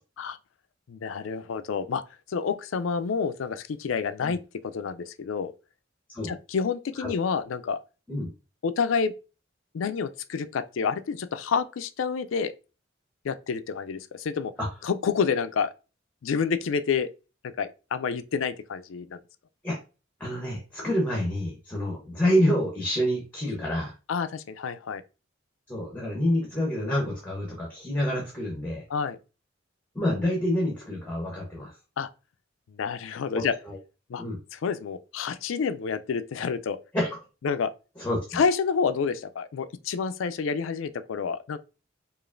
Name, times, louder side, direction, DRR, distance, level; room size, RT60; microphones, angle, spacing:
voice 1, 0.9-2.0 2.3-5.5 6.2-7.8 8.6-9.1 9.7-12.5 13.2-14.5 14.8-15.7 16.2-17.1 17.4-19.2 24.1-25.0 28.9-29.2 32.0-32.1 32.7-33.6 34.1-34.2 34.5-36.8 37.4-37.7 38.3-41.6, left 5 dB, 90° left, 0.4 m, -28 dB
voice 2, 20.2-23.9 25.7-28.8 29.9-31.8 33.3-33.8 34.2-34.4 36.9-37.2 38.0-38.4, equal, 10° left, 0.9 m, -27 dB
4.9 x 2.5 x 2.5 m
head